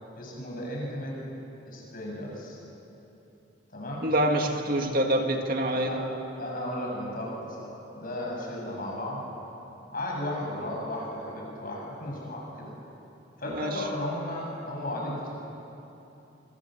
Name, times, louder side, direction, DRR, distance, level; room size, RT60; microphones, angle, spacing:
voice 1, 0.2-1.1 1.7-2.6 3.7-4.1 5.7-6.0 6.4-9.2 9.9-12.7 13.4-15.3, left 1 dB, 45° left, -2 dB, 7.8 m, -34 dB
voice 2, 4.0-6.0 13.5-13.8, right 1 dB, 50° right, 3 dB, 2.1 m, -26 dB
27.0 x 24.0 x 8.0 m, 2.9 s
head